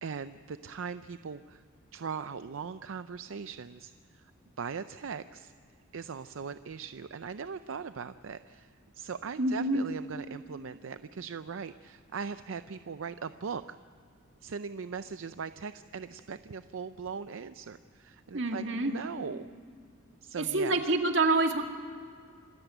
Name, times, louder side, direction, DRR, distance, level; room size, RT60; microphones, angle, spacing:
voice 1, 0.0-1.6 1.9-4.2 4.6-5.5 5.9-13.8 14.4-19.5 20.2-20.8, right 6 dB, 80° right, 12 dB, 0.5 m, -40 dB
voice 2, 9.4-9.8 18.3-18.9 20.4-21.6, right 2 dB, 60° right, 4 dB, 2.2 m, -27 dB
26.5 x 14.0 x 9.1 m, 2.3 s
head